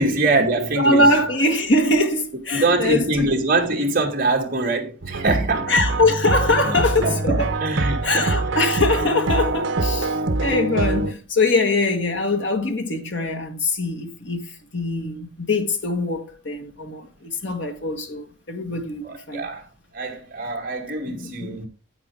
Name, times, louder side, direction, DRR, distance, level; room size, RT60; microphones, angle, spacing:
voice 1, 0.0-1.2 2.5-5.7 6.6-8.3 19.0-19.7 19.9-21.7, right 2 dB, 40° right, 2.6 m, -23 dB
voice 2, 0.8-3.4 5.7-7.5 8.0-19.5 21.1-21.6, left 2 dB, 55° left, 1.8 m, -22 dB
sound 1, 5.0-11.1, right 2 dB, 65° right, 1.1 m, -24 dB
9.7 x 8.3 x 3.6 m
head